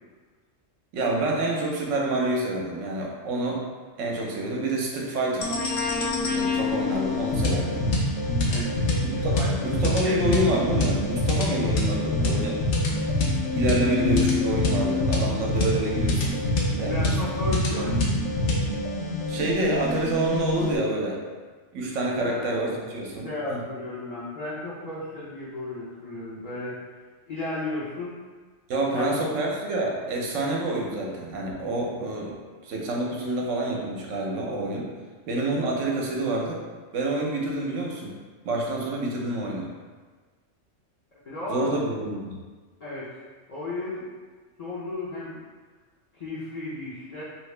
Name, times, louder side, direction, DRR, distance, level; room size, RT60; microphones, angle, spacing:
voice 1, 0.9-3.7 4.0-5.5 6.2-7.9 9.2-12.6 13.5-16.3 16.7-17.3 19.3-21.2 21.7-23.6 28.7-32.4 32.6-34.9 35.3-36.6 36.9-38.2 38.4-39.7 41.5-42.4, right 2 dB, 75° right, -1 dB, 1.0 m, -27 dB
sound 1, 5.4-20.8, left 2 dB, 65° left, 0.9 m, -25 dB
voice 2, 8.5-9.5 10.0-10.2 16.9-18.0 22.2-22.4 23.2-26.8 27.3-28.1 28.9-29.1 41.2-41.8 42.8-43.1 43.5-44.0 44.6-45.4 46.1-47.2, left 2 dB, 40° left, -9 dB, 0.6 m, -34 dB
2.9 x 2.8 x 3.2 m, 1.4 s
omnidirectional pair, 1.3 m